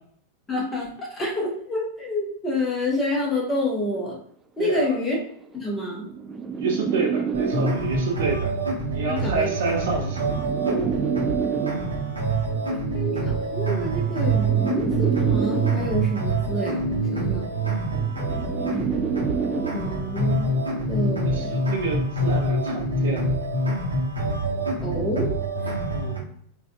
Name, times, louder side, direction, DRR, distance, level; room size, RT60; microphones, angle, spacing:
voice 1, 0.5-4.1 4.6-5.2 5.5-6.1 9.1-9.5 12.9-17.5 18.7-18.8 19.5-21.5 24.8-25.3, left 1 dB, 15° left, -3 dB, 1.4 m, -28 dB
sound 1, 3.9-4.2 5.0-8.2 9.2-12.2 13.2-16.2 17.2-20.2 21.2-21.5, right 6 dB, 15° right, 0.3 m, -29 dB
voice 2, 4.6-4.9 6.6-8.5 8.9-11.0 18.3-18.7 21.3-23.3 25.9-26.3, right 4 dB, 55° right, 1 dB, 0.8 m, -29 dB
sound 2, 7.3-26.2, right 2 dB, 80° right, 1.1 m, -26 dB
4.0 x 2.6 x 2.4 m, 0.65 s
figure-of-eight pair, 90°, 0 cm